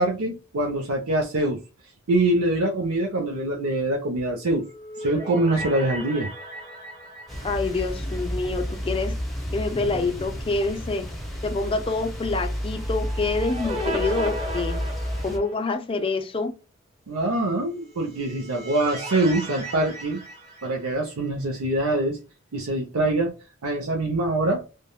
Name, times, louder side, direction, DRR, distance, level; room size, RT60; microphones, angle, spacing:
voice 1, 0.0-1.6 2.1-4.6 5.0-6.3 17.1-20.2 20.6-22.2 22.5-23.3 23.6-24.6, right 2 dB, 80° right, 0.6 m, -24 dB
sound 1, 4.5-8.8 9.1-9.2 12.7-15.8 17.9-21.3, equal, 30° right, 1.1 m, -36 dB
sound 2, 7.3-15.4, equal, ahead, 0.8 m, -31 dB
voice 2, 7.4-9.1 9.5-11.1 11.4-14.8 15.2-16.5, left 3 dB, 25° left, 0.4 m, -26 dB
3.4 x 2.1 x 2.2 m
head